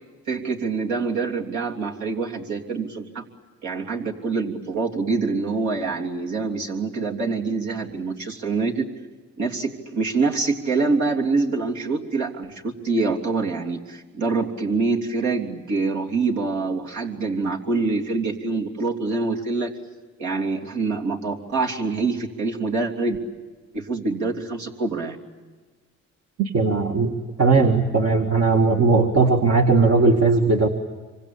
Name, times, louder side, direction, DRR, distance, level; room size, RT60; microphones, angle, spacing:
voice 1, 0.3-3.2 3.6-8.9 9.4-19.7 20.2-23.2 23.7-25.2, right 3 dB, 70° right, 0 dB, 3.3 m, -25 dB
voice 2, 26.4-30.7, right 4 dB, 55° right, 2 dB, 2.1 m, -18 dB
26.5 x 25.0 x 8.6 m, 1.4 s
cardioid pair, 90°, 30 cm